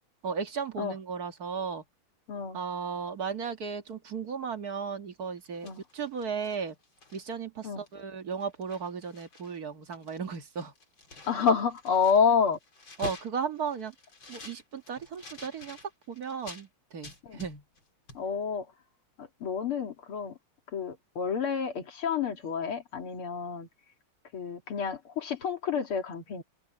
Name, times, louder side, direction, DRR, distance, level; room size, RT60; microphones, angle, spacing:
voice 1, 0.2-1.8 2.5-6.8 7.1-10.7 13.0-13.9 14.3-15.8 16.1-16.7 16.9-17.6, right 6 dB, 45° right, 2.0 m, -35 dB
voice 2, 2.3-2.6 5.6-5.8 7.6-7.8 11.3-12.6 17.2-17.4 18.1-18.7 19.2-20.4 20.7-23.7 24.3-26.4, left 6 dB, 85° left, 3.2 m, -29 dB
sound 1, 5.4-7.4 7.9-8.0 8.3-9.6 9.8-16.7 17.0-17.8 18.1-18.2, left 3 dB, 65° left, 5.5 m, -47 dB
omnidirectional pair, 2.3 m